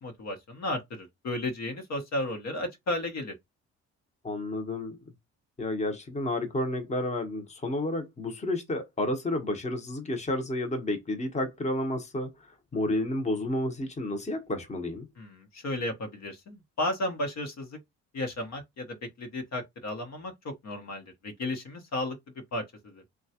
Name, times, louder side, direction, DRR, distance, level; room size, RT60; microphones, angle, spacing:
voice 1, 0.0-3.3 15.2-17.8 18.1-22.2 22.5-23.0, left 1 dB, 60° left, 1.0 m, -34 dB
voice 2, 4.2-5.0 5.6-15.1, left 1 dB, 25° left, 0.9 m, -31 dB
3.0 x 2.3 x 2.8 m
cardioid pair, 90°, 30 cm